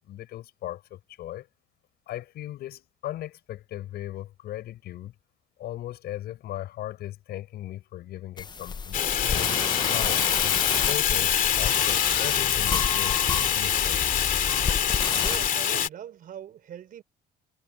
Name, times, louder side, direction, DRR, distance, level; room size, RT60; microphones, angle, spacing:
voice 1, 0.1-1.5 2.1-5.1 5.6-9.6 9.9-14.0, left 13 dB, 70° left, 6.8 m, -38 dB
sound 1, 8.4-15.5, left 5 dB, 25° left, 0.7 m, -31 dB
Fire, 8.9-15.9, left 9 dB, 55° left, 2.6 m, -25 dB
voice 2, 15.1-17.0, right 10 dB, 55° right, 5.0 m, -41 dB
cardioid pair, 110°, 17 cm